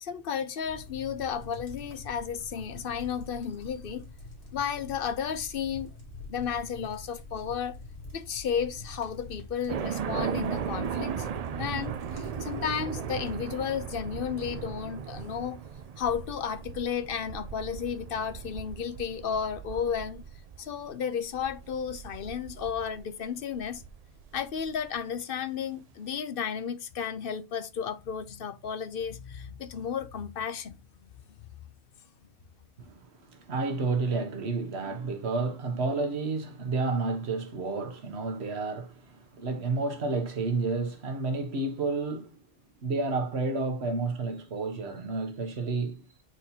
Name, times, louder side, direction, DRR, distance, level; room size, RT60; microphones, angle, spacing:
voice 1, 0.0-4.0 4.5-5.9 6.3-7.8 8.1-11.3 11.6-15.6 16.0-20.2 20.6-23.8 24.3-30.7, left 7 dB, 60° left, 0.9 m, -33 dB
sound 1, 0.6-13.4, left 2 dB, 80° left, 2.4 m, -45 dB
sound 2, 9.7-24.8, right 8 dB, 60° right, 0.4 m, -37 dB
voice 2, 32.9-42.4 42.8-46.0, right 3 dB, 75° right, 1.4 m, -30 dB
8.9 x 4.2 x 2.8 m
omnidirectional pair, 1.1 m